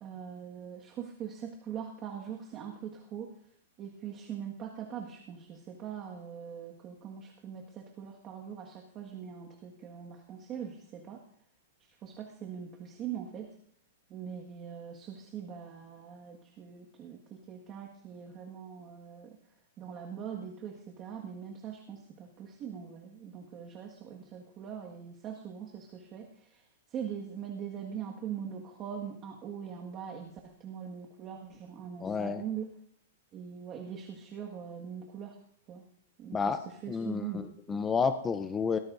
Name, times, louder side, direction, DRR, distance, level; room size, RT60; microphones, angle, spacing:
voice 1, 0.0-3.3 3.8-11.2 12.0-13.5 14.1-19.4 19.8-26.6 26.9-32.7 33.3-35.4 35.7-35.8 36.2-37.4 37.7-37.9, right 8 dB, 20° right, 0 dB, 1.7 m, -42 dB
voice 2, 32.0-32.4 36.3-36.6 36.9-38.8, left 5 dB, 10° left, 8 dB, 0.7 m, -30 dB
23.0 x 19.0 x 2.7 m, 0.69 s
hypercardioid pair, 170°, 0 cm